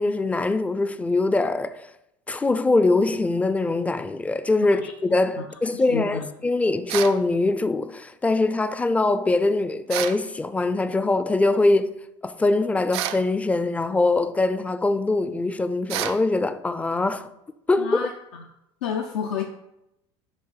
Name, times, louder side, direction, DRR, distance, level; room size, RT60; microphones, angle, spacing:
voice 1, 0.0-1.9 2.3-11.9 12.2-17.3 17.7-18.0, left 2 dB, 10° left, 0.4 m, -23 dB
voice 2, 4.6-4.9 5.4-5.5 5.7-6.3 17.8-18.4 18.8-19.4, left 6 dB, 85° left, 0.6 m, -30 dB
sound 1, 6.9-7.2 9.9-10.2 12.9-13.3 15.9-16.2, right 12 dB, 80° right, 0.4 m, -29 dB
7.4 x 2.6 x 5.6 m
supercardioid pair, 105°, 14 cm